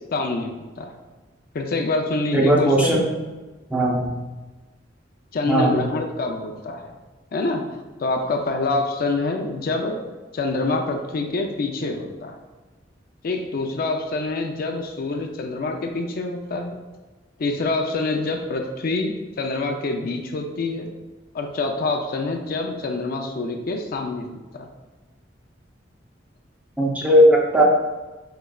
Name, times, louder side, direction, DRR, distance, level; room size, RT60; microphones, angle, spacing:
voice 1, 0.1-0.9 1.5-3.0 5.3-6.9 7.3-7.6 8.0-10.0 10.3-12.4 13.2-16.8 17.4-20.9 21.3-24.7, left 3 dB, 50° left, 3 dB, 0.4 m, -26 dB
voice 2, 2.3-3.1 3.7-4.1 5.5-5.8 26.8-27.6, equal, 10° right, -2 dB, 0.6 m, -17 dB
4.8 x 3.2 x 2.3 m, 1.2 s
head